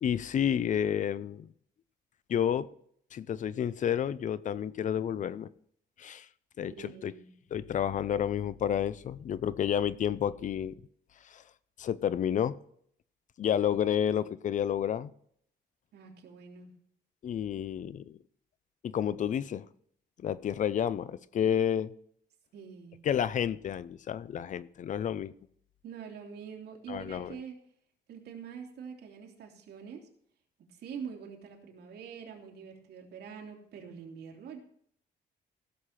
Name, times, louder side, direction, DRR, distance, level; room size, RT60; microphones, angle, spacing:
voice 1, 0.0-1.5 2.3-2.7 3.1-5.5 6.0-6.3 6.6-7.1 7.5-10.8 11.3-11.4 11.8-12.6 13.4-15.1 17.2-18.2 18.8-19.7 20.2-21.9 23.0-25.3 26.9-27.4, left 9 dB, 45° left, 18 dB, 0.5 m, -30 dB
voice 2, 6.7-7.3 15.9-16.7 22.5-23.0 25.8-27.6 28.1-30.1 30.7-34.6, right 7 dB, 70° right, 1 dB, 2.9 m, -45 dB
16.5 x 6.6 x 5.8 m, 0.66 s
cardioid pair, 150°, 17 cm